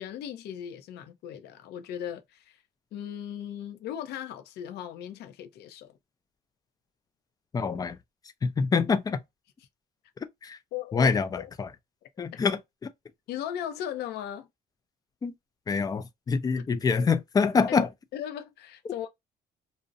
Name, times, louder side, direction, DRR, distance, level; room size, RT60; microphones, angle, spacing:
voice 1, 0.0-2.6 2.9-6.0 10.7-11.5 13.3-14.5 18.1-19.1, left 10 dB, 75° left, 0.6 m, -37 dB
voice 2, 7.5-8.0 8.4-9.2 10.4-10.6 10.9-11.7 12.2-12.6 15.2-15.3 15.7-17.9, left 5 dB, 20° left, 0.4 m, -25 dB
2.5 x 2.0 x 2.6 m
cardioid pair, 110°, 17 cm